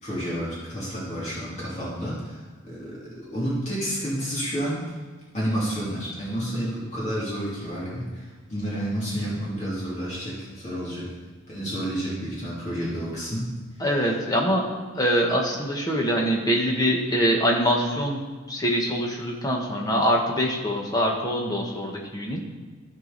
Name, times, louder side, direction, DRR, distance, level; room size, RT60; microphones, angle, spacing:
voice 1, 0.0-4.8 5.3-11.1 11.5-13.5, equal, 35° left, -7 dB, 2.8 m, -30 dB
voice 2, 13.8-14.7 14.9-18.2 18.5-22.4, equal, 20° left, -1 dB, 1.2 m, -24 dB
14.0 x 4.8 x 4.0 m, 1.4 s
head